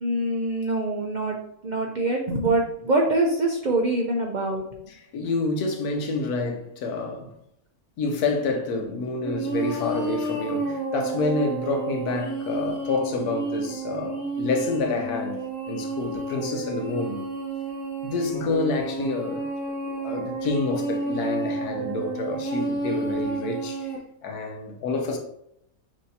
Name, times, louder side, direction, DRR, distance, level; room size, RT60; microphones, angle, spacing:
voice 1, 0.0-1.4 1.6-4.6, right 2 dB, 90° right, 0.4 m, -24 dB
voice 2, 4.9-7.3 8.0-17.3 18.0-23.9 24.2-25.2, left 3 dB, 90° left, 1.3 m, -28 dB
sound 1, 9.2-24.0, right 3 dB, 15° left, 1.4 m, -31 dB
6.1 x 2.7 x 2.7 m
omnidirectional pair, 1.6 m